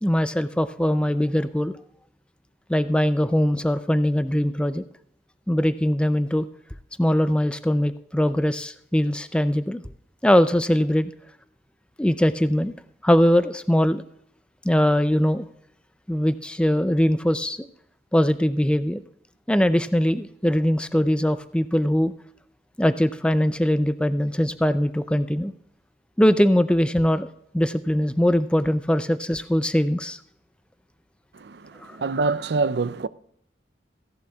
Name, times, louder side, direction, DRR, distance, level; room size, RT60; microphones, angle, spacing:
voice 1, 0.0-1.7 2.7-4.8 5.5-6.5 7.0-9.8 10.2-11.1 12.0-12.7 13.0-14.0 14.6-15.5 16.1-17.7 18.1-19.0 19.5-22.1 22.8-25.5 26.2-27.3 27.5-30.2 31.8-32.0, equal, 5° left, 0.4 m, -21 dB
voice 2, 31.3-33.1, right 3 dB, 65° right, 0.5 m, -26 dB
16.5 x 11.5 x 2.3 m
head